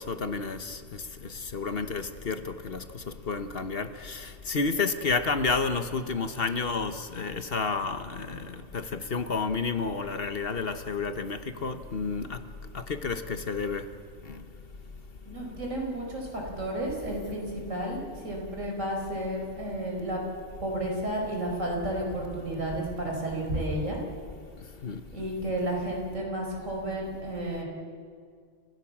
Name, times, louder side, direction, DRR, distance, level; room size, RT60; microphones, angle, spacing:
voice 1, 0.0-12.4 12.7-13.9 14.3-14.4 24.8-25.0, left 4 dB, 50° left, 9 dB, 1.3 m, -31 dB
voice 2, 15.3-20.2 20.6-24.0 25.1-27.6, right 1 dB, 85° right, -1 dB, 5.3 m, -32 dB
29.5 x 15.5 x 7.3 m, 2.1 s
omnidirectional pair, 1.3 m